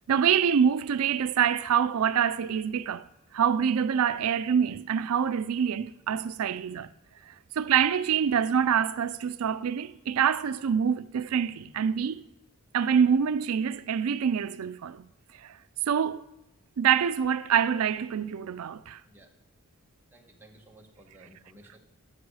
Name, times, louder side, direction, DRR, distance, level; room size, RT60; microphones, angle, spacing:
voice 1, 0.1-3.1 3.3-6.9 7.3-12.2 12.7-15.1 15.4-15.6 15.9-16.2 16.8-19.0, right 7 dB, 75° right, 0.4 m, -26 dB
voice 2, 20.1-21.8, right 1 dB, 10° right, 1.6 m, -55 dB
14.0 x 9.3 x 4.8 m
head